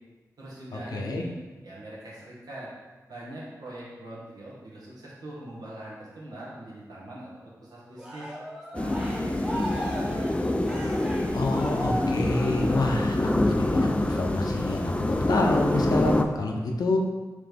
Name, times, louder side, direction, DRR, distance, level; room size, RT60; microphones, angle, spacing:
voice 1, 0.4-1.3 1.6-2.7 3.1-7.3 7.6-8.3 8.7-10.4, right 1 dB, 85° right, -6 dB, 1.2 m, -42 dB
voice 2, 0.9-1.3 11.3-17.0, left 2 dB, 75° left, 1 dB, 0.6 m, -28 dB
Cheering, 8.0-13.2 13.7-14.0, equal, 10° right, 0.9 m, -37 dB
Low Approach F, 8.7-16.2, left 1 dB, 20° left, 0.3 m, -26 dB
4.1 x 3.2 x 3.4 m, 1.2 s
cardioid pair, 50°, 7 cm